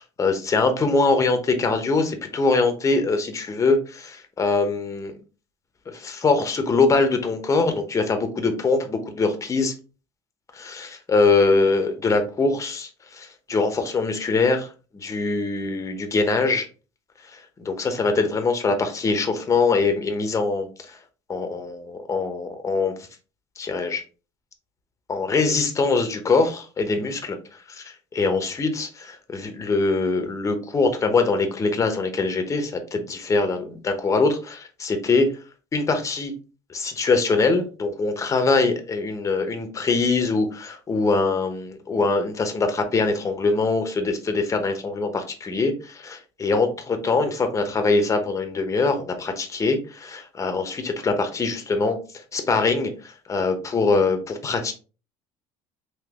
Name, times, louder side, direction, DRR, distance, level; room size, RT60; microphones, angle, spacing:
voice 1, 0.0-5.2 5.9-9.7 10.5-14.7 14.9-16.7 17.3-21.0 21.3-22.9 23.6-24.0 25.1-27.4 27.7-35.3 35.7-36.3 36.7-52.0 52.3-54.7, left 3 dB, 25° left, 6 dB, 0.8 m, -23 dB
3.8 x 2.8 x 2.9 m, 0.34 s
cardioid pair, 115°, 13 cm